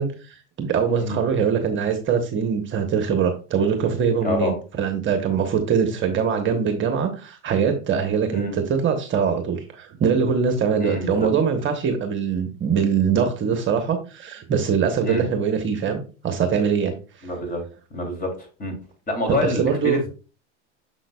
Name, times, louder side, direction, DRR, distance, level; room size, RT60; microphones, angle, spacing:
voice 1, 0.0-17.3 19.3-20.0, right 6 dB, 35° right, 5 dB, 1.1 m, -23 dB
voice 2, 4.2-4.5 8.3-8.6 10.8-11.3 15.0-15.2 17.2-17.6 17.9-18.3 18.6-18.7 19.1-20.1, left 1 dB, 25° left, 3 dB, 2.9 m, -26 dB
6.8 x 6.0 x 2.3 m, 0.34 s
hypercardioid pair, 105°, 36 cm